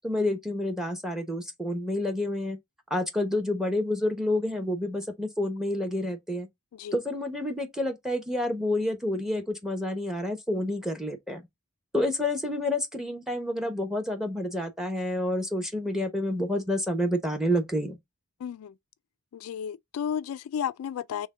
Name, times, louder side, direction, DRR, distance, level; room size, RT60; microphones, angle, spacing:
voice 1, 0.0-2.6 2.9-6.5 6.9-11.4 11.9-18.0, left 1 dB, ahead, 0.9 m, -29 dB
voice 2, 18.4-18.7 19.3-21.3, left 8 dB, 80° left, 0.3 m, -33 dB
6.1 x 2.2 x 3.6 m
head